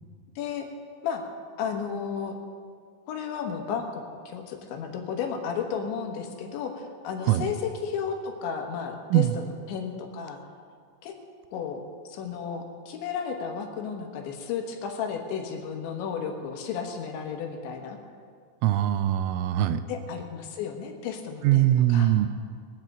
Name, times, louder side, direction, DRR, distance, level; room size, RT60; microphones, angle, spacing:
voice 1, 0.4-0.7 1.0-1.2 1.6-2.4 3.1-10.4 11.0-11.1 11.5-18.0 19.9-22.1, left 6 dB, 70° left, 3 dB, 3.4 m, -33 dB
voice 2, 18.6-19.8 21.4-22.3, right 13 dB, 85° right, 11 dB, 3.1 m, -22 dB
22.0 x 7.6 x 7.9 m, 2.1 s
omnidirectional pair, 5.8 m